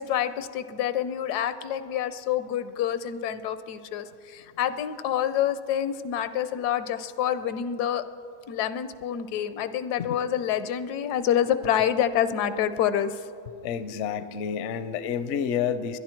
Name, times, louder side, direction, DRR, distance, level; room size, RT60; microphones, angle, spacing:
voice 1, 0.0-8.0 8.5-13.3, left 10 dB, 80° left, 13 dB, 1.2 m, -27 dB
voice 2, 13.6-16.0, left 7 dB, 65° left, 13 dB, 0.7 m, -29 dB
21.5 x 10.5 x 4.4 m, 2.5 s
omnidirectional pair, 1.7 m